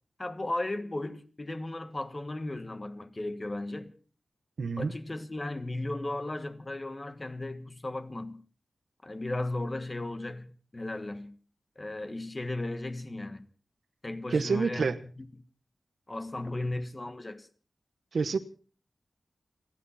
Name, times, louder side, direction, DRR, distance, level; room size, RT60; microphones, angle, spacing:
voice 1, 0.2-3.9 4.8-8.4 9.0-11.4 11.8-13.5 14.0-15.3 16.1-17.5, left 2 dB, 25° left, 1.4 m, -36 dB
voice 2, 4.6-4.9 14.3-15.0 18.1-18.4, right 4 dB, 85° right, 1.1 m, -27 dB
30.0 x 11.5 x 4.2 m
wide cardioid pair, 120°, 0 cm